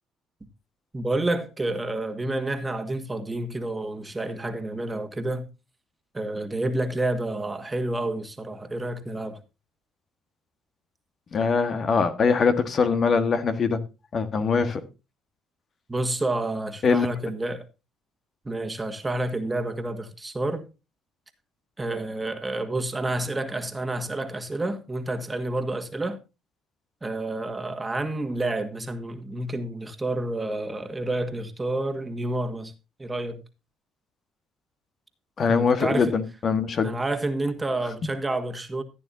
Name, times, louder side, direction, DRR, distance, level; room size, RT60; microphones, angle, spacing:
voice 1, 0.9-5.5 6.1-9.4 15.9-17.6 18.4-20.6 21.8-26.2 27.0-32.7 33.0-33.4 35.5-36.1 36.8-38.8, right 2 dB, 15° right, 1.8 m, -29 dB
voice 2, 11.3-13.8 14.1-14.8 16.8-17.1 35.4-36.9, left 5 dB, 45° left, 1.6 m, -22 dB
15.5 x 9.4 x 2.8 m
cardioid pair, 95°, 0 cm